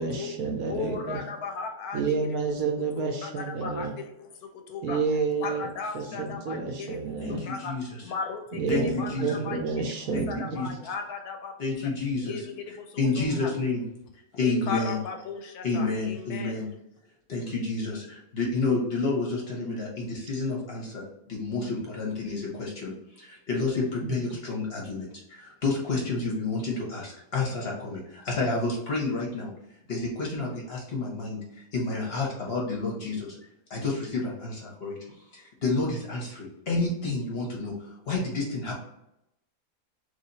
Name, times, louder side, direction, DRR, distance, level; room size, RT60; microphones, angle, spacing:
voice 1, 0.0-1.2 1.9-3.9 4.8-5.7 5.9-7.4 8.6-8.9 9.2-10.6 24.0-24.2, right 5 dB, 70° right, 3 dB, 1.0 m, -29 dB
voice 2, 0.6-2.6 2.9-5.0 5.4-7.8 8.0-9.6 9.9-10.0 10.3-11.7 12.2-13.5 14.4-16.6, left 5 dB, 75° left, 4 dB, 1.0 m, -37 dB
voice 3, 7.2-8.0 8.7-9.4 10.1-10.3 10.5-10.7 11.6-12.5 13.0-13.8 14.3-15.0 15.6-16.7 17.3-29.5 29.9-33.4 33.7-35.0 35.3-38.8, left 3 dB, 50° left, -2 dB, 0.8 m, -30 dB
3.3 x 2.7 x 4.0 m, 0.83 s
omnidirectional pair, 1.7 m